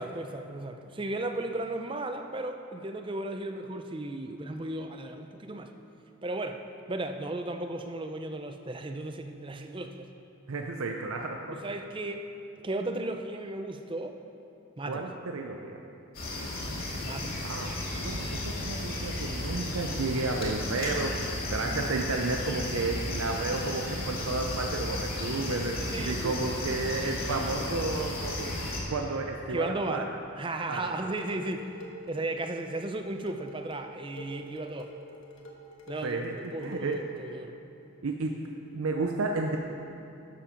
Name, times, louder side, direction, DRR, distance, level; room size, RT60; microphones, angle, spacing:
voice 1, 0.0-5.7 6.2-6.6 6.9-10.1 11.5-12.2 12.6-14.2 14.8-15.0 17.0-17.5 25.9-26.4 29.5-30.1 30.4-34.9 35.9-37.5, right 2 dB, 25° right, 6 dB, 0.5 m, -35 dB
voice 2, 10.5-11.6 14.9-15.8 17.4-30.2 30.7-31.1 36.0-37.0 38.0-38.4 38.7-39.6, right 3 dB, 75° right, 2 dB, 0.6 m, -32 dB
sound 1, 16.1-28.8, left 2 dB, 45° left, 2.1 m, -34 dB
Dishes pots and pans, 30.8-37.4, equal, 65° left, 1.4 m, -47 dB
12.5 x 7.3 x 5.1 m, 2.8 s
head